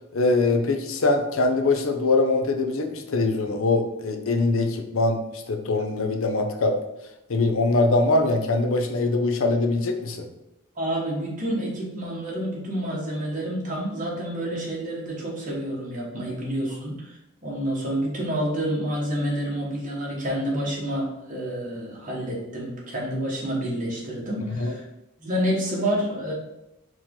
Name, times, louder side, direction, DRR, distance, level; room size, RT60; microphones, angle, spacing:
voice 1, 0.1-6.8 7.3-10.3 24.6-24.7, left 2 dB, 65° left, 5 dB, 0.6 m, -23 dB
voice 2, 10.8-17.1 17.4-24.8 25.2-26.3, right 1 dB, 35° right, -4 dB, 1.3 m, -28 dB
4.5 x 3.0 x 3.7 m, 0.92 s
head